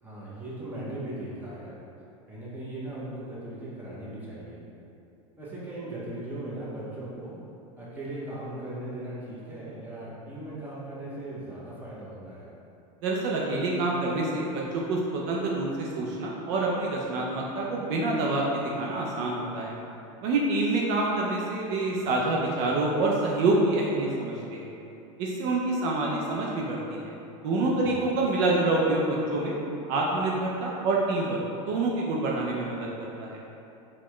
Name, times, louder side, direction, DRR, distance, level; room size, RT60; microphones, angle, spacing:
voice 1, 0.0-1.8 2.3-4.6 5.4-7.4 7.8-12.5 27.7-28.2, right 1 dB, 10° right, -8 dB, 0.9 m, -38 dB
voice 2, 13.0-19.7 20.2-24.7 25.2-27.1 27.4-29.6 29.9-31.4 31.7-33.4, right 2 dB, 55° right, -3 dB, 0.5 m, -27 dB
4.0 x 2.2 x 3.0 m, 2.8 s
supercardioid pair, 120°, 17 cm